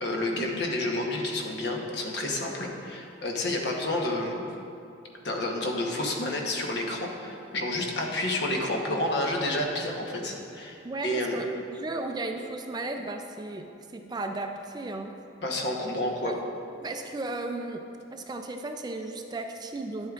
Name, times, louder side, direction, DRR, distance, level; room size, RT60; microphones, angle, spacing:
voice 1, 0.0-4.4 5.2-11.4 15.4-16.3, left 1 dB, 60° left, 1 dB, 1.0 m, -30 dB
voice 2, 10.8-13.7 13.9-15.1 16.2-16.4 16.8-17.8 18.1-20.1, right 2 dB, 20° right, 5 dB, 0.3 m, -35 dB
10.5 x 8.0 x 2.4 m, 2.6 s
head